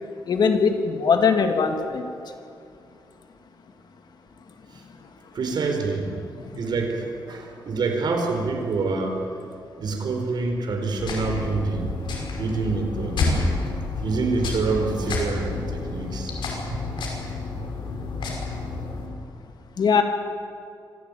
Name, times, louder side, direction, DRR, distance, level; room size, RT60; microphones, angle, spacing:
voice 1, 0.3-2.1 6.4-6.5 19.8-20.0, left 5 dB, 60° left, 5 dB, 2.3 m, -20 dB
voice 2, 5.3-6.1 6.6-9.2 9.8-11.9 12.4-13.6 14.0-16.3 16.6-16.8, right 4 dB, 65° right, 4 dB, 4.3 m, -26 dB
sound 1, 11.0-19.1, left 3 dB, 90° left, 5.7 m, -29 dB
25.5 x 16.0 x 9.1 m, 2.4 s
wide cardioid pair, 125°, 8 cm